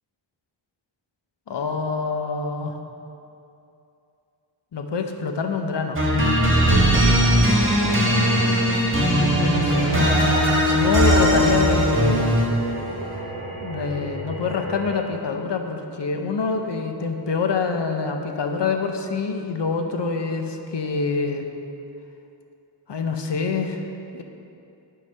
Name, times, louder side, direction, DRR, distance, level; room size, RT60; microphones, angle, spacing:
voice 1, 1.5-2.8 4.7-6.0 6.7-7.1 9.4-10.1 10.6-12.3 13.6-21.5 22.9-23.8 24.1-24.2, left 4 dB, 60° left, 5 dB, 0.7 m, -26 dB
sound 1, 6.0-12.7, equal, 25° right, 1.6 m, -19 dB
sound 2, 9.2-15.0, right 1 dB, 45° right, 1.2 m, -34 dB
9.2 x 3.9 x 5.4 m, 2.7 s
wide cardioid pair, 80°, 47 cm